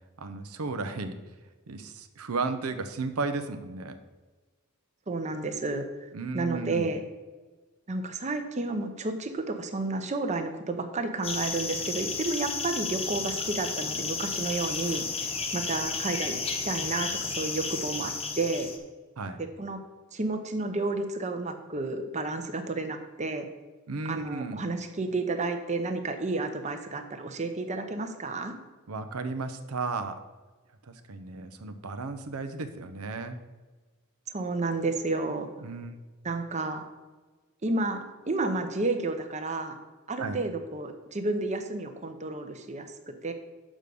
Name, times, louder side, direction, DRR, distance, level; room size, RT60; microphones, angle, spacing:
voice 1, 0.2-1.2 1.7-4.0 6.1-6.9 19.2-19.4 23.9-24.6 28.9-30.2 30.8-33.4 35.6-36.0 40.2-40.4, right 3 dB, 90° right, 8 dB, 0.7 m, -34 dB
voice 2, 5.1-7.0 7.9-15.0 15.5-16.4 16.6-18.7 19.4-19.8 20.1-23.5 24.0-28.5 34.3-35.5 36.2-36.8 37.6-39.8 40.1-42.9 43.2-43.3, right 3 dB, 35° right, 6 dB, 0.7 m, -31 dB
sound 1, 11.2-18.8, left 4 dB, 30° left, 0.9 m, -32 dB
6.3 x 5.2 x 6.8 m, 1.3 s
head